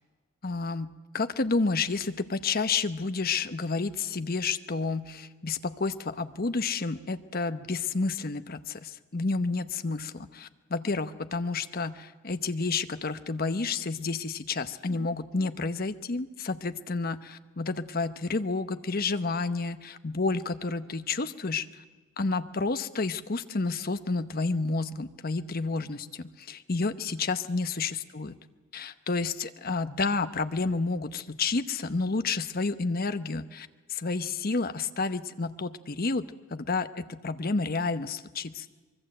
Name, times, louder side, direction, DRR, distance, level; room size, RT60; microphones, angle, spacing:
voice 1, 0.4-21.8 22.2-28.3 28.7-38.7, left 3 dB, 45° left, 11 dB, 0.9 m, -30 dB
24.0 x 22.5 x 7.8 m, 1.3 s
head